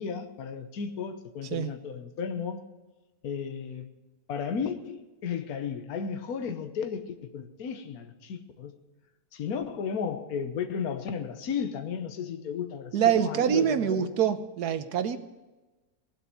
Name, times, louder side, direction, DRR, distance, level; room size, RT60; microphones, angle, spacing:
voice 1, 0.0-2.6 3.2-3.9 4.3-8.7 9.3-14.2, left 6 dB, 65° left, 1.5 m, -34 dB
voice 2, 12.9-15.2, right 9 dB, 70° right, 1.4 m, -25 dB
18.5 x 8.0 x 7.0 m
omnidirectional pair, 1.8 m